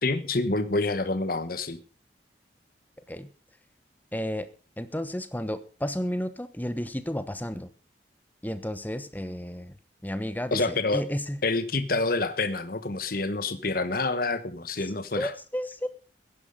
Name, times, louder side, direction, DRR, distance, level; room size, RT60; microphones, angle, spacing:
voice 1, 0.0-1.8 10.5-11.0 11.4-15.3, left 3 dB, 50° left, 12 dB, 1.2 m, -27 dB
voice 2, 4.1-4.5 4.8-7.7 8.4-9.8 10.0-11.4 14.8-15.9, equal, 10° left, 12 dB, 1.0 m, -32 dB
15.0 x 10.5 x 5.3 m, 0.37 s
head